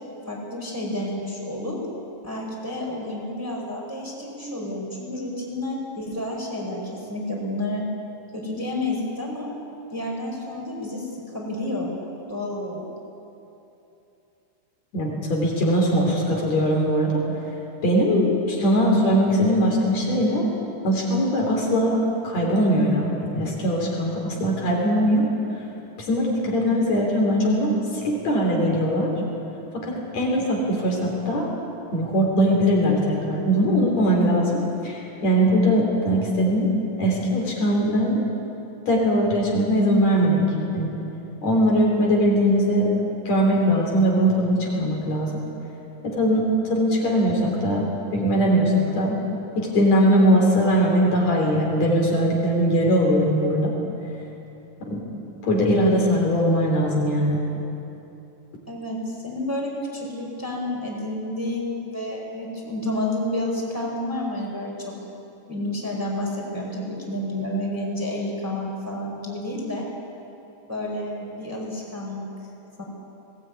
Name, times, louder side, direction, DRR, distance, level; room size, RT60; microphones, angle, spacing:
voice 1, 0.3-1.8 2.2-7.8 8.3-9.5 9.9-11.9 12.3-12.8 58.7-64.9 65.5-69.9 70.7-72.2 72.8-72.9, left 1 dB, 5° right, -3 dB, 4.6 m, -30 dB
voice 2, 14.9-17.2 17.8-20.4 20.8-22.0 22.2-25.3 26.0-29.1 29.7-31.5 31.9-36.7 37.0-38.2 38.9-40.4 40.7-40.9 41.4-42.9 43.2-45.3 46.0-47.9 48.1-49.2 49.6-53.7 54.8-55.0 55.4-57.4, equal, 60° left, -1 dB, 4.7 m, -21 dB
20.5 x 18.0 x 9.5 m, 2.9 s
omnidirectional pair, 3.5 m